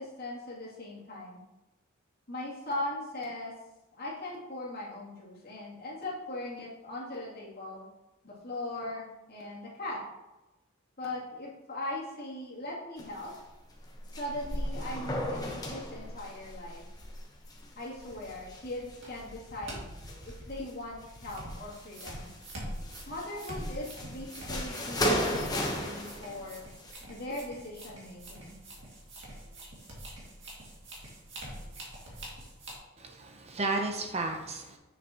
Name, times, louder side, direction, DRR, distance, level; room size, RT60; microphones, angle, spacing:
voice 1, 0.0-1.4 2.3-3.5 3.9-7.9 8.2-10.0 11.0-13.3 14.2-16.8 17.8-19.9 20.2-22.3 23.1-26.6 27.1-28.6, left 1 dB, 45° left, -6 dB, 2.5 m, -39 dB
sound 1, 13.0-13.4 13.7-19.2 19.7-20.7 21.0-22.5 22.8-26.9, equal, 20° left, 0.9 m, -36 dB
sound 2, 17.9-32.8, right 1 dB, 60° right, 2.1 m, -45 dB
voice 2, 33.0-34.8, right 3 dB, 30° right, 3 dB, 0.6 m, -33 dB
7.9 x 6.6 x 2.9 m, 1.0 s
head